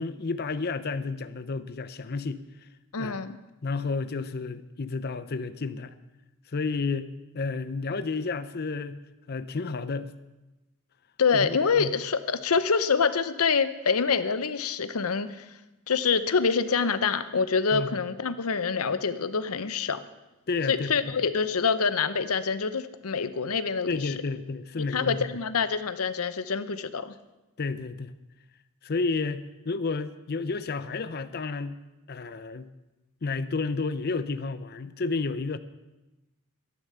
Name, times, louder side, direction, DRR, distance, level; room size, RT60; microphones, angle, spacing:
voice 1, 0.0-2.4 3.0-3.2 3.6-5.9 6.5-9.0 9.3-10.1 11.3-11.9 17.7-17.9 20.5-21.1 23.9-25.3 27.6-28.1 28.8-31.8 32.1-32.7 33.2-35.6, left 4 dB, 45° left, 12 dB, 0.6 m, -31 dB
voice 2, 2.9-3.4 11.2-15.4 15.9-20.0 20.7-24.1 24.8-27.1, left 5 dB, 80° left, 12 dB, 0.8 m, -26 dB
13.5 x 10.5 x 6.9 m, 1.0 s
head